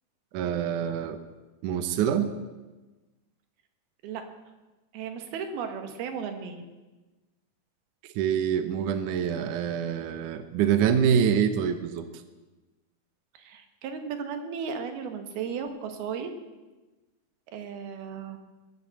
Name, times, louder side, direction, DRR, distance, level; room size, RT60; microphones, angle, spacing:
voice 1, 0.3-1.2 1.6-2.3 8.2-12.1, right 8 dB, 70° right, 9 dB, 2.1 m, -25 dB
voice 2, 4.9-6.6 13.3-16.3 17.5-18.4, right 6 dB, 90° right, 6 dB, 3.3 m, -35 dB
21.5 x 8.2 x 7.6 m, 1.2 s
omnidirectional pair, 4.3 m